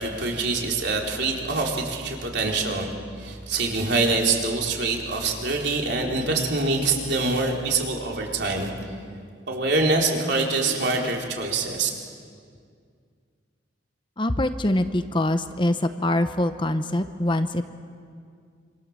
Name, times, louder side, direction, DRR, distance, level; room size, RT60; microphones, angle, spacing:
voice 1, 0.0-8.7 9.5-11.9, right 3 dB, 60° right, 0 dB, 4.2 m, -25 dB
voice 2, 14.2-17.6, left 1 dB, 25° left, 9 dB, 0.9 m, -24 dB
27.0 x 26.0 x 7.5 m, 2.2 s
head